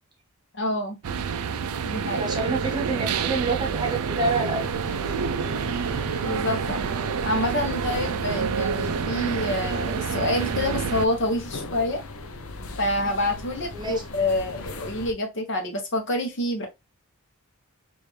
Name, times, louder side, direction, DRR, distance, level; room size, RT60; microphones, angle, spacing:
voice 1, 0.5-1.0 1.8-2.3 6.2-6.8 7.2-12.0 12.8-16.7, left 1 dB, 55° left, 1.0 m, -27 dB
sound 1, 1.0-11.1, right 6 dB, 85° right, 0.4 m, -28 dB
voice 2, 2.2-4.7 13.7-14.0, right 3 dB, 20° right, 0.9 m, -27 dB
sound 2, 4.5-15.1, left 2 dB, 75° left, 0.7 m, -38 dB
4.3 x 2.5 x 3.2 m
head